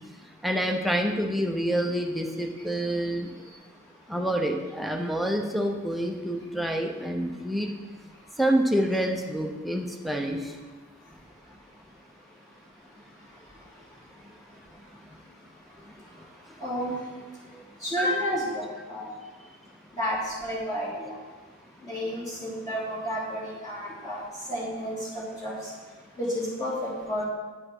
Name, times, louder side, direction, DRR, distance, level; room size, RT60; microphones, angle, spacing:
voice 1, 0.4-3.3 4.1-7.7 8.4-10.4, right 1 dB, ahead, 2 dB, 0.7 m, -27 dB
voice 2, 16.6-17.0 17.8-19.1 20.0-21.2 21.8-24.2 24.5-25.5 26.2-27.3, equal, 15° left, -7 dB, 3.0 m, -31 dB
9.3 x 5.7 x 5.9 m, 1.3 s
head